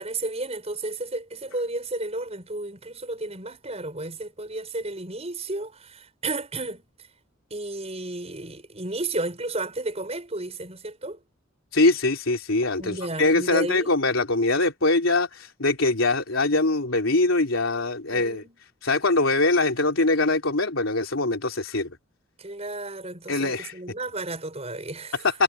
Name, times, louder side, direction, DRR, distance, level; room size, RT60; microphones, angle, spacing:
voice 1, 0.0-6.9 7.5-11.2 12.8-14.0 18.1-18.6 22.4-25.3, right 2 dB, 30° right, 7.3 m, -33 dB
voice 2, 11.7-18.4 18.8-21.9 23.3-23.8 25.2-25.4, left 2 dB, 90° left, 3.5 m, -23 dB
head